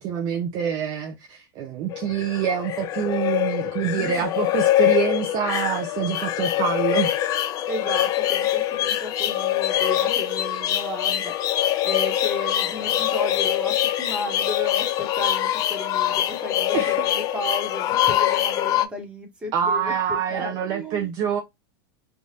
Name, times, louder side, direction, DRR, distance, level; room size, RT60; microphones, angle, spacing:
voice 1, 0.0-7.2 16.7-17.0 19.5-21.4, right 8 dB, 35° right, 0.5 m, -26 dB
sound 1, 1.9-18.9, left 12 dB, 30° left, 0.3 m, -24 dB
voice 2, 7.6-21.1, left 1 dB, 10° right, 1.2 m, -34 dB
3.3 x 2.5 x 2.7 m
supercardioid pair, 145°, 12 cm